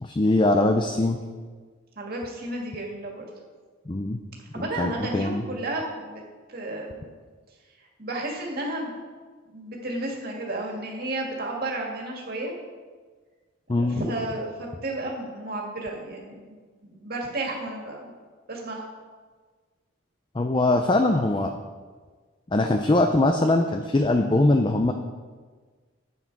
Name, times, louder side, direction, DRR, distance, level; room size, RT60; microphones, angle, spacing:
voice 1, 0.0-1.2 3.9-4.2 4.6-5.4 13.7-14.0 20.3-21.5 22.5-24.9, left 2 dB, 25° left, 5 dB, 0.5 m, -22 dB
voice 2, 2.0-3.3 4.5-6.2 6.5-7.1 7.8-8.9 9.5-12.5 13.8-16.6 16.8-18.1 18.5-18.8, right 2 dB, 50° right, -1 dB, 2.1 m, -32 dB
11.0 x 8.2 x 4.8 m, 1.5 s
head